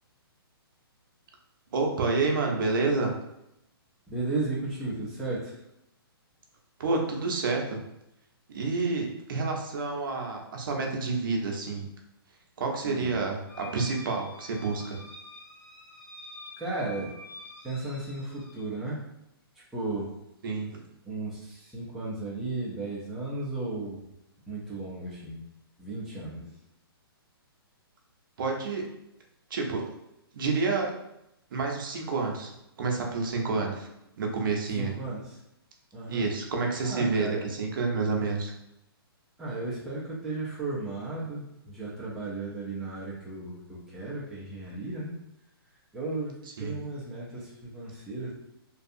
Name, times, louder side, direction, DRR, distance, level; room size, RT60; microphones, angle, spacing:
voice 1, 1.7-3.1 6.8-7.8 8.5-11.9 12.6-15.0 20.4-20.8 28.4-28.8 29.5-29.9 30.3-30.9 31.5-32.5 32.8-33.9 34.2-34.9 36.1-37.3 37.6-38.5 46.6-46.7, right 3 dB, 55° right, 1 dB, 0.6 m, -29 dB
voice 2, 4.1-5.6 12.8-13.2 16.6-17.2 17.6-19.1 19.5-20.2 21.0-24.0 24.5-25.4 25.8-26.5 34.7-35.4 35.9-36.3 36.8-37.5 39.4-45.1 45.7-48.3, right 2 dB, ahead, -9 dB, 0.3 m, -35 dB
sound 1, 13.5-18.7, left 2 dB, 55° left, 1.3 m, -47 dB
2.6 x 2.3 x 2.5 m, 0.84 s
hypercardioid pair, 155°, 13 cm